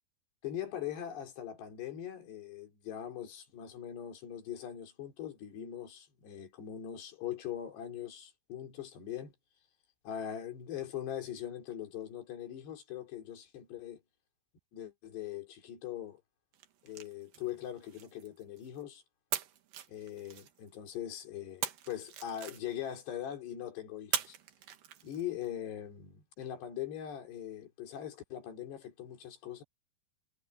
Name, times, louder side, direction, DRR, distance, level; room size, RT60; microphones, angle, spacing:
voice 1, 0.4-9.3 10.0-14.0 14.7-16.2 16.8-19.0 19.9-24.4 25.0-29.6, left 10 dB, 75° left, 5.6 m, -41 dB
sound 1, 16.5-18.8 19.3-20.9 21.6-23.0 24.1-25.5, right 10 dB, 60° right, 2.8 m, -41 dB
omnidirectional pair, 4.9 m